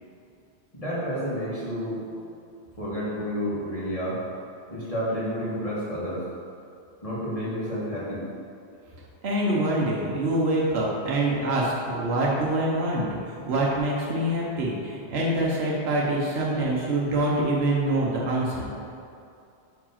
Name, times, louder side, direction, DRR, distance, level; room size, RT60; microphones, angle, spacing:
voice 1, 0.7-2.0 2.8-4.2 4.7-6.2 7.0-8.2, equal, 35° left, -9 dB, 1.7 m, -30 dB
voice 2, 9.2-18.7, right 1 dB, 70° right, -4 dB, 1.2 m, -25 dB
5.9 x 4.8 x 5.7 m, 2.6 s
omnidirectional pair, 1.1 m